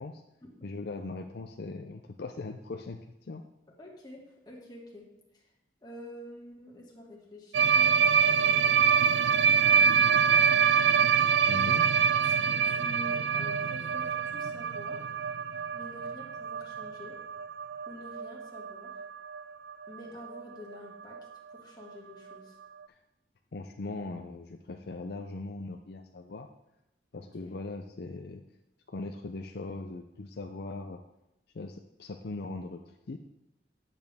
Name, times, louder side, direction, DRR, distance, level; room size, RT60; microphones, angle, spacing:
voice 1, 0.6-3.0 3.3-3.4 11.4-11.9 23.5-26.5 27.1-28.4 28.9-31.0 31.5-32.8 33.1-33.2, left 3 dB, 65° left, 5 dB, 0.5 m, -39 dB
voice 2, 3.8-5.1 5.8-8.8 12.4-15.1 15.7-17.1 17.9-18.9 19.9-21.2 21.5-22.5 27.2-27.5, left 1 dB, 25° left, -3 dB, 1.9 m, -47 dB
sound 1, 7.5-19.4 19.7-19.9 20.2-20.4 20.7-20.8 21.1-21.2 22.3-22.4, right 7 dB, 75° right, 0.3 m, -25 dB
10.5 x 7.0 x 3.5 m, 0.86 s
head